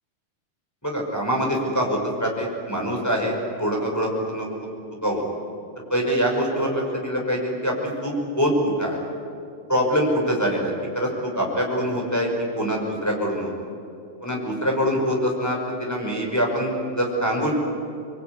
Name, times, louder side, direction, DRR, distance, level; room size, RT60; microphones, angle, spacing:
voice 1, 0.8-4.7 5.0-5.2 5.9-9.0 9.7-12.3 12.6-13.5 14.2-17.5, equal, 5° left, -1 dB, 5.2 m, -24 dB
26.0 x 22.5 x 9.6 m, 2.7 s
omnidirectional pair, 4.6 m